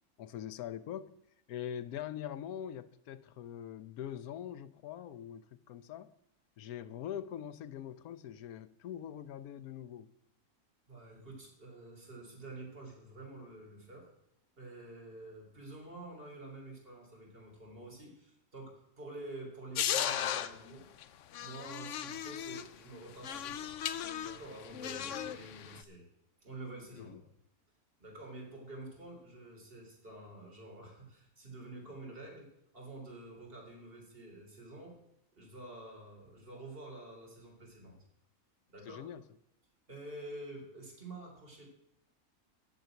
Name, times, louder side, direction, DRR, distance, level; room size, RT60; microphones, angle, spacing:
voice 1, 0.2-1.1 1.5-6.1 6.6-10.1 27.0-27.2 38.9-39.2, left 10 dB, 85° left, 1.1 m, -43 dB
voice 2, 10.9-14.1 14.6-20.9 21.4-23.7 24.2-26.1 26.4-27.1 28.0-35.0 35.4-38.0 38.7-39.0 39.9-41.7, right 2 dB, 40° right, 3.7 m, -48 dB
sound 1, 19.8-20.5 21.0-21.1 21.3-22.7 23.2-25.8, left 10 dB, 65° left, 0.9 m, -36 dB
10.0 x 6.7 x 9.0 m
omnidirectional pair, 1.5 m